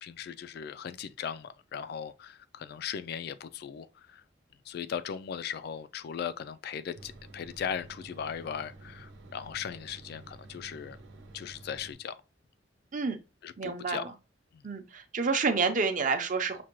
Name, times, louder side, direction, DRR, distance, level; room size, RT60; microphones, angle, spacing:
voice 1, 0.0-4.2 4.7-11.0 11.3-12.2 13.4-14.1 14.5-14.6, left 7 dB, 60° left, 0.3 m, -38 dB
sound 1, 6.9-11.9, right 2 dB, 85° right, 0.8 m, -50 dB
voice 2, 13.6-14.0 14.6-16.6, right 4 dB, 45° right, 0.6 m, -29 dB
6.0 x 2.2 x 3.0 m
head